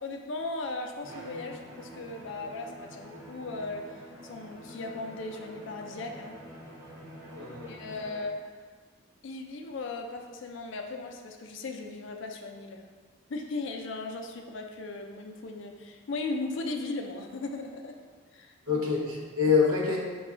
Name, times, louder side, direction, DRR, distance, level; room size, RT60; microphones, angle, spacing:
voice 1, 0.0-6.4 7.7-8.3 9.2-12.9 13.3-17.9 18.3-18.8, left 3 dB, 60° left, 3 dB, 0.4 m, -37 dB
Bowed string instrument, 1.0-8.4, right 1 dB, 10° right, 0.6 m, -47 dB
voice 2, 7.3-7.7 18.7-20.0, left 5 dB, 85° right, -3 dB, 0.8 m, -25 dB
4.8 x 2.3 x 3.7 m, 1.5 s
head